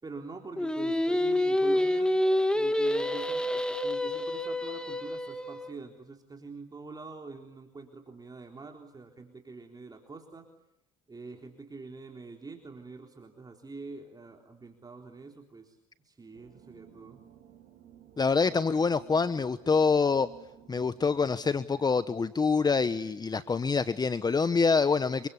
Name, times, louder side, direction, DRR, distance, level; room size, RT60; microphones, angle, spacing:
voice 1, 0.0-2.1 2.5-10.5 11.1-17.2, right 4 dB, 25° right, 3 dB, 3.8 m, -45 dB
Singing, 0.6-5.7, left 1 dB, 5° left, 2.9 m, -28 dB
sound 1, 16.3-21.6, right 9 dB, 60° right, 4.7 m, -55 dB
voice 2, 18.2-20.3 20.7-25.3, left 5 dB, 25° left, 14 dB, 1.1 m, -26 dB
29.0 x 24.0 x 8.4 m, 0.85 s
supercardioid pair, 70°, 16 cm